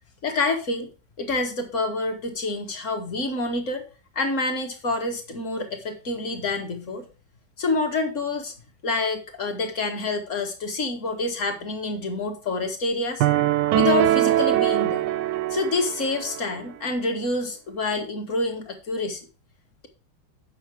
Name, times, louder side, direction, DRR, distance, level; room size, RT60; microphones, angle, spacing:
voice 1, 0.2-0.9 1.2-3.8 4.1-7.1 7.6-8.5 8.8-13.3 13.7-15.0 15.5-19.3, left 3 dB, 40° left, 5 dB, 1.7 m, -27 dB
sound 1, 13.2-16.4, right 13 dB, 75° right, 1.1 m, -22 dB
8.2 x 5.6 x 4.7 m, 0.35 s
omnidirectional pair, 2.1 m